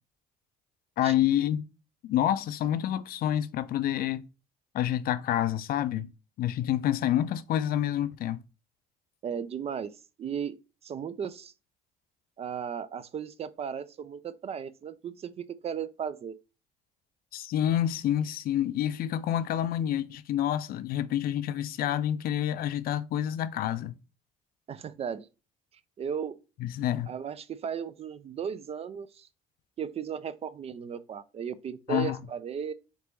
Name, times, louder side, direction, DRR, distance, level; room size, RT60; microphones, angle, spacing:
voice 1, 1.0-1.6 2.0-4.2 4.7-6.1 6.4-8.4 17.3-24.0 26.6-27.1 31.9-32.2, left 11 dB, 60° left, 0.4 m, -28 dB
voice 2, 9.2-10.6 10.8-11.5 12.4-16.4 24.7-25.3 26.0-26.4 27.1-29.3 29.8-32.7, right 7 dB, 35° right, 0.4 m, -36 dB
3.9 x 3.4 x 3.0 m
cardioid pair, 110°, 17 cm